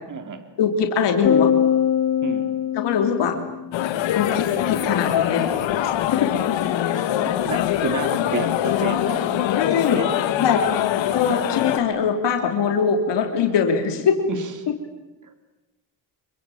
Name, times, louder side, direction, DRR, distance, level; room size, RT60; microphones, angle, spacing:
voice 1, 0.1-0.4 2.2-2.5 6.9-10.2 10.5-11.0 14.3-14.5 15.2-15.3, right 5 dB, 45° right, 8 dB, 3.5 m, -32 dB
voice 2, 0.6-1.5 2.7-3.4 4.1-5.6 6.1-6.3 9.6-10.0 10.4-10.6 11.1-14.1, left 7 dB, 70° left, 4 dB, 3.2 m, -22 dB
sound 1, 1.2-3.8, left 9 dB, 35° left, 1.0 m, -22 dB
sound 2, 3.7-11.8, left 11 dB, 85° left, 2.3 m, -23 dB
26.5 x 23.5 x 9.2 m, 1.1 s
cardioid pair, 110°, 44 cm